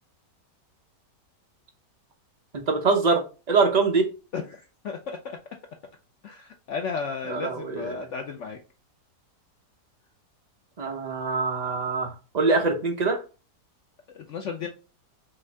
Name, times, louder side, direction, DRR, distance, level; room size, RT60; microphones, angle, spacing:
voice 1, 2.5-4.1 7.3-8.1 10.8-12.1 12.3-13.2, right 4 dB, 45° right, 0.5 m, -24 dB
voice 2, 4.3-5.4 6.2-8.6 14.1-14.7, left 5 dB, 75° left, 0.6 m, -34 dB
5.4 x 2.6 x 3.3 m
omnidirectional pair, 1.8 m